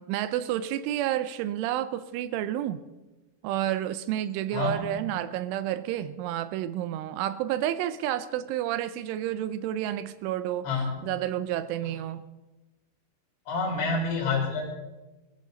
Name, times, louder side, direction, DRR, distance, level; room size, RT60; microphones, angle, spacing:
voice 1, 0.0-2.8 3.4-10.7 11.0-12.3, right 12 dB, 80° right, 3.0 m, -30 dB
voice 2, 4.5-5.0 10.6-11.0 11.8-11.9 13.5-14.6, left 4 dB, 55° left, 6.4 m, -28 dB
21.0 x 14.5 x 4.0 m
omnidirectional pair, 5.7 m